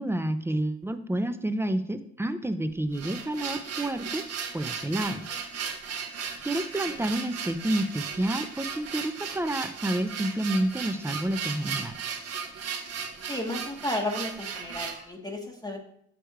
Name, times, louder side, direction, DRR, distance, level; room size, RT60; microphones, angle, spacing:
voice 1, 0.0-4.2 4.5-5.2 6.4-11.9, right 1 dB, 10° right, 10 dB, 0.4 m, -29 dB
sound 1, 2.7-15.1, right 6 dB, 55° right, 0.8 m, -36 dB
voice 2, 13.2-15.8, left 1 dB, 15° left, 1 dB, 0.9 m, -33 dB
6.3 x 3.4 x 4.5 m, 0.70 s
cardioid pair, 90°, 30 cm